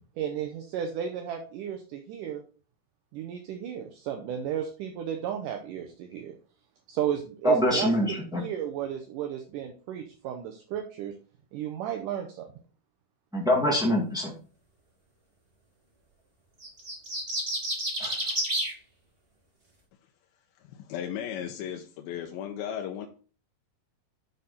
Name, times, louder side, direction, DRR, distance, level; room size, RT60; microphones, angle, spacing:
voice 1, 0.2-2.4 3.1-6.4 6.9-11.2 11.5-12.5, right 9 dB, 75° right, 3 dB, 2.0 m, -34 dB
voice 2, 7.4-8.4 13.3-14.3 18.0-18.1, equal, 5° right, -2 dB, 0.5 m, -24 dB
sound 1, 16.6-18.7, right 1 dB, 50° right, 0.6 m, -30 dB
voice 3, 20.7-23.1, left 9 dB, 80° left, 3 dB, 2.5 m, -35 dB
12.0 x 4.0 x 4.2 m, 0.38 s
omnidirectional pair, 4.5 m